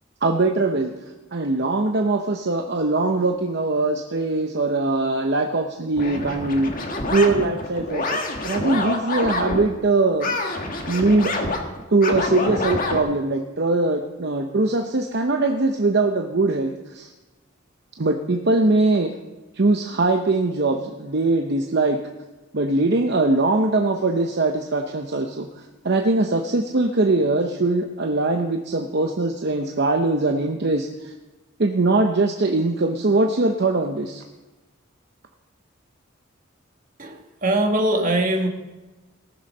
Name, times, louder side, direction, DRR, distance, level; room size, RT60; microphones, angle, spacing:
voice 1, 0.2-0.9 1.3-10.4 10.9-11.3 11.9-17.1 18.0-19.1 19.5-22.0 22.5-31.1 31.6-34.2, right 2 dB, 55° right, 4 dB, 0.8 m, -21 dB
sound 1, 6.0-9.7 10.2-13.0, left 2 dB, 45° left, 1.6 m, -27 dB
voice 2, 37.0-38.5, right 1 dB, 40° right, 3 dB, 1.6 m, -22 dB
18.5 x 7.0 x 5.4 m, 1.1 s
head